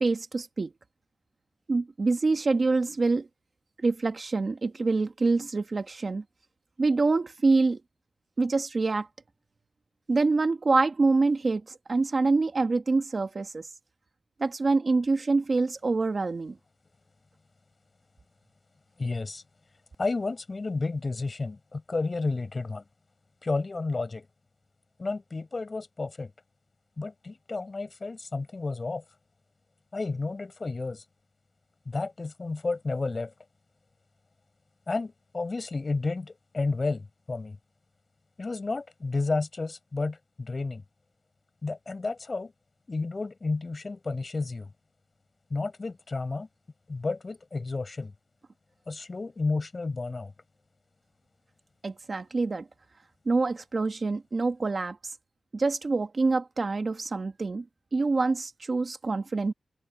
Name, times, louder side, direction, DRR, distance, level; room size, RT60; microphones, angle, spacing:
voice 1, 0.0-0.7 1.7-3.3 3.8-6.2 6.8-7.8 8.4-9.1 10.1-13.7 14.4-16.6 51.8-52.6 53.2-55.0 55.5-57.6 57.9-59.5, right 3 dB, 40° right, 1.3 m, -26 dB
voice 2, 19.0-19.4 20.0-22.8 23.4-24.3 25.0-26.3 27.0-29.0 29.9-31.0 31.9-33.3 34.9-37.6 38.4-40.8 41.6-42.5 42.9-44.7 45.5-46.5 46.9-48.1 48.9-50.3, left 3 dB, 35° left, 7.4 m, -31 dB
wide cardioid pair, 145°, 0 cm